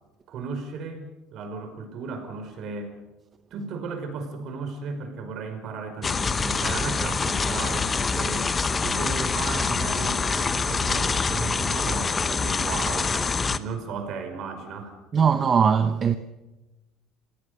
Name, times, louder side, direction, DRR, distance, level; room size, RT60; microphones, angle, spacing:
voice 1, 0.3-1.0 1.3-2.9 3.5-8.5 8.8-15.0, right 4 dB, 55° right, 5.2 m, -35 dB
sound 1, 6.0-13.6, left 4 dB, 20° left, 0.9 m, -25 dB
voice 2, 15.1-16.2, right 7 dB, 30° right, 0.9 m, -20 dB
27.5 x 17.5 x 6.7 m
cardioid pair, 140°, 0 cm